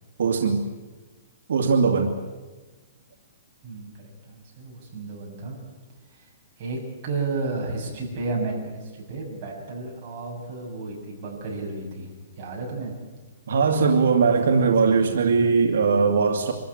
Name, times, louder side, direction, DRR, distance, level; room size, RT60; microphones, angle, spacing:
voice 1, 0.2-0.7 1.5-2.1 13.5-16.5, right 5 dB, 80° right, 2 dB, 2.3 m, -20 dB
voice 2, 4.3-5.6 6.1-6.3 6.6-6.8 7.0-12.1 12.4-12.9 13.9-15.0, right 3 dB, 30° right, -3 dB, 7.0 m, -33 dB
25.0 x 14.5 x 9.8 m, 1.3 s
hypercardioid pair, 165°, 0 cm